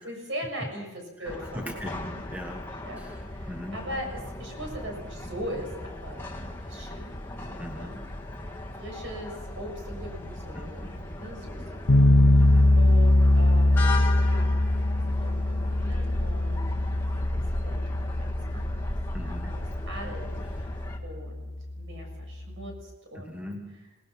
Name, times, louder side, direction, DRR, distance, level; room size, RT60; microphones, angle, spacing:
voice 1, 0.0-1.8 2.8-3.0 3.3-4.1 4.4-7.1 7.5-7.9 8.8-12.0 12.8-14.6 14.9-18.8 19.2-23.6, equal, 60° right, 2 dB, 6.8 m, -41 dB
sound 1, 1.2-21.0, left 1 dB, 10° left, 2.0 m, -37 dB
voice 2, 1.2-2.0 2.3-2.6 3.0-3.8 7.6-8.0 10.5-10.9 12.4-12.7 19.1-19.5 23.3-23.8, equal, 5° right, 2 dB, 1.6 m, -40 dB
sound 2, 11.9-22.8, left 1 dB, 65° left, 1.1 m, -23 dB
27.0 x 19.0 x 6.0 m, 1.0 s
head